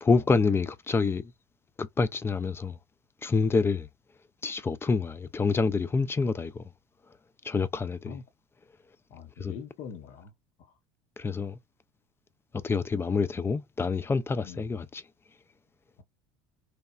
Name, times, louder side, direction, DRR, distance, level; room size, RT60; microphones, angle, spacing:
voice 1, 0.0-1.3 1.8-2.8 3.2-3.9 4.4-6.6 7.4-8.2 9.4-9.5 11.2-11.6 12.6-15.0, left 4 dB, 15° left, 0.3 m, -27 dB
voice 2, 9.1-10.3 10.6-10.7 14.4-14.7, left 7 dB, 55° left, 0.6 m, -43 dB
2.9 x 2.1 x 2.3 m
hypercardioid pair, 70°, 15 cm